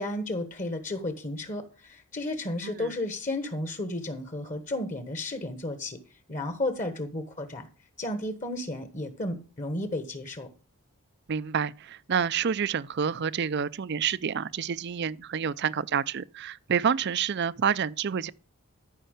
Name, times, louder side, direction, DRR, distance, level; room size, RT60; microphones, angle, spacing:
voice 1, 0.0-6.0 6.3-7.7 8.0-10.5, left 1 dB, 35° left, 1.4 m, -33 dB
voice 2, 11.3-18.3, right 7 dB, 50° right, 0.4 m, -28 dB
13.5 x 5.6 x 6.5 m
head